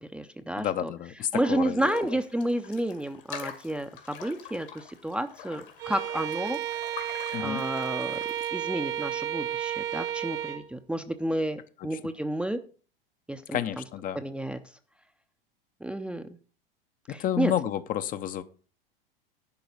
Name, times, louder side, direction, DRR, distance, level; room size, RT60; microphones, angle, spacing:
voice 1, 0.0-0.9 1.3-6.6 7.4-8.2 8.5-12.6 13.3-13.6 14.1-14.6 15.8-16.4 17.1-17.5, right 1 dB, 5° right, 8 dB, 0.7 m, -31 dB
voice 2, 0.6-2.1 7.3-7.6 11.9-12.0 13.5-14.2 17.1-18.4, left 11 dB, 30° left, 11 dB, 0.8 m, -30 dB
sound 1, 1.8-8.5, left 7 dB, 65° left, 2.4 m, -45 dB
Bowed string instrument, 5.8-10.7, right 11 dB, 40° right, 1.1 m, -32 dB
11.0 x 4.8 x 7.7 m, 0.39 s
figure-of-eight pair, 85°, 29 cm